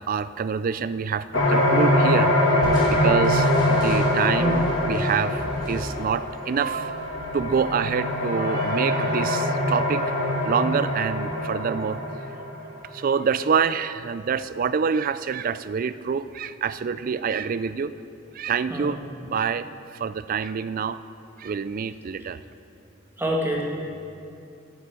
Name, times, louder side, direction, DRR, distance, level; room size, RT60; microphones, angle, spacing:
voice 1, 0.0-10.1 10.4-12.0 12.9-17.9 18.3-19.0 19.2-21.0 21.4-22.4, right 6 dB, 45° right, 14 dB, 0.4 m, -26 dB
sound 1, 1.3-12.8, left 1 dB, 70° left, 1.8 m, -23 dB
Crushing, 2.6-8.0, equal, 25° left, 3.3 m, -37 dB
voice 2, 23.2-23.6, right 1 dB, 10° right, -2 dB, 1.7 m, -25 dB
11.0 x 7.9 x 7.6 m, 2.6 s
head